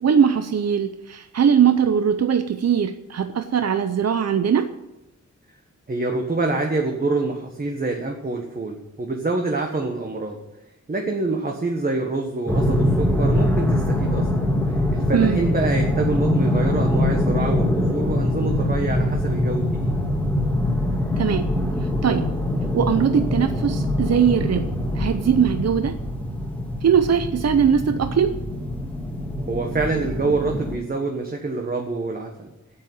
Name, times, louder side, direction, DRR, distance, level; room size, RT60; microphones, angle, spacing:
voice 1, 0.0-4.7 15.1-15.4 21.2-21.5 22.0-22.3 22.7-24.7 24.9-26.0 26.8-28.4, right 7 dB, 55° right, 9 dB, 0.7 m, -20 dB
voice 2, 5.9-10.4 10.9-14.4 14.9-19.9 29.5-32.5, right 3 dB, 30° right, 2 dB, 1.3 m, -26 dB
sound 1, 12.5-30.8, left 1 dB, 5° left, 1.7 m, -23 dB
8.8 x 8.6 x 9.4 m, 0.96 s
wide cardioid pair, 150°, 30 cm